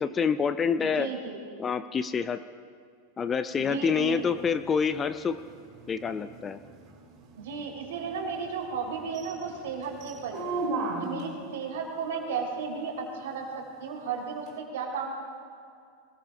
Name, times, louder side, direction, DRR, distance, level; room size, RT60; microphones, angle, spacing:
voice 1, 0.0-1.1 1.6-2.4 3.2-5.4 5.9-6.6, left 6 dB, 20° left, 11 dB, 0.5 m, -27 dB
voice 2, 0.8-1.4 3.6-4.3 7.4-10.5 11.0-15.2, right 5 dB, 55° right, 0 dB, 3.6 m, -34 dB
sound 1, 3.5-11.4 14.5-14.6, right 3 dB, 35° right, 2.7 m, -38 dB
25.0 x 19.5 x 2.5 m, 2.2 s
figure-of-eight pair, 90°, 0 cm